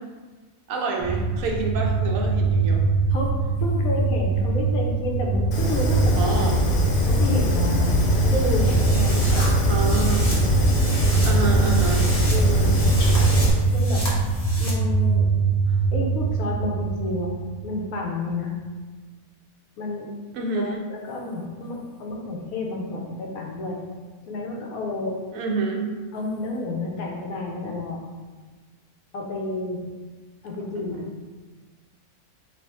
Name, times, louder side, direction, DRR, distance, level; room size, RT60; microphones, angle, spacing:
voice 1, 0.7-2.8 6.2-6.6 9.7-10.3 11.2-12.1 15.7-15.8 20.3-20.8 25.3-25.9 30.8-30.9, right 4 dB, 70° right, 0 dB, 0.9 m, -27 dB
sound 1, 1.0-17.8, right 4 dB, 15° right, 0.5 m, -23 dB
voice 2, 3.6-6.3 7.1-9.8 12.3-12.8 13.7-14.1 14.6-15.3 15.6-17.3 17.6-18.5 19.8-20.1 20.5-23.8 24.2-25.2 26.1-28.0 29.1-29.8 30.4-31.0, left 2 dB, 80° left, -1 dB, 1.1 m, -30 dB
Fire, 5.5-13.5, left 1 dB, 55° left, 0.6 m, -23 dB
sound 2, 8.0-14.7, left 1 dB, 35° left, 1.0 m, -34 dB
3.3 x 2.4 x 4.3 m, 1.4 s
omnidirectional pair, 1.5 m